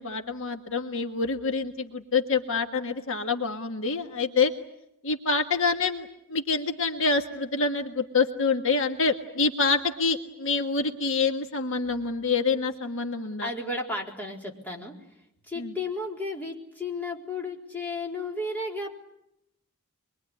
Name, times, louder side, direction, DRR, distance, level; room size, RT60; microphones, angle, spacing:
voice 1, 0.0-4.5 5.0-13.5 15.6-15.7, left 4 dB, 60° left, 5 dB, 1.6 m, -26 dB
voice 2, 13.4-14.9 15.5-19.0, left 2 dB, 10° left, -1 dB, 4.2 m, -33 dB
25.0 x 23.0 x 9.9 m, 0.81 s
head